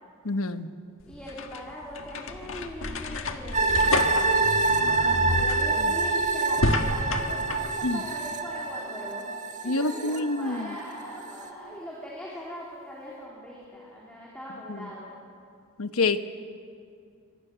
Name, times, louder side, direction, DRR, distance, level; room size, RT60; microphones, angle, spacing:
voice 1, 0.2-0.7 5.8-5.9 7.8-8.0 9.6-10.7 14.7-14.9 15.8-16.2, left 3 dB, 90° left, 10 dB, 1.1 m, -27 dB
sound 1, 1.0-7.7, left 2 dB, 70° left, 1.6 m, -30 dB
voice 2, 1.1-4.3 4.6-9.3 9.6-15.1, equal, 5° left, -6 dB, 3.7 m, -40 dB
sound 2, 3.5-10.8 11.2-11.3, right 3 dB, 35° right, 1.6 m, -26 dB
sound 3, 3.6-12.5 13.1-13.2, right 2 dB, 60° right, 0.8 m, -39 dB
26.0 x 24.0 x 6.9 m, 2.3 s
head